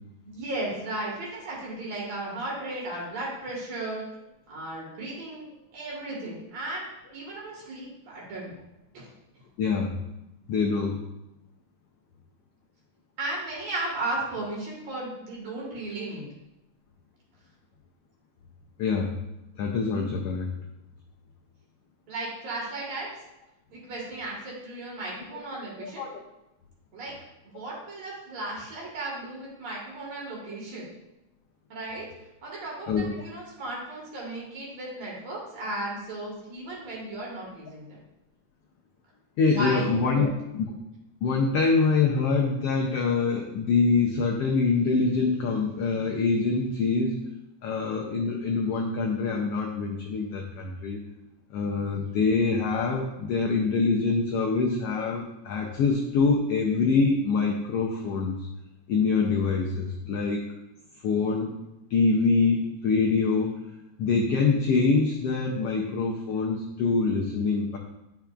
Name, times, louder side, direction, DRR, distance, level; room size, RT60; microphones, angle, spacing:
voice 1, 0.3-4.0 4.5-8.5 8.9-9.1 13.2-16.2 22.1-23.1 23.7-26.1 26.9-27.1 27.5-30.8 31.7-32.1 32.4-37.9 39.5-40.3, right 2 dB, 60° right, -3 dB, 2.9 m, -35 dB
voice 2, 9.6-10.0 10.5-11.0 18.8-19.2 19.6-20.5 25.8-26.1 32.9-33.2 39.4-40.7 41.2-47.2 47.6-51.0 51.5-58.5 58.9-60.4 61.0-61.5 61.9-63.6 64.0-67.8, left 4 dB, 80° left, 0 dB, 1.3 m, -25 dB
10.5 x 5.6 x 2.4 m, 0.92 s
omnidirectional pair, 3.5 m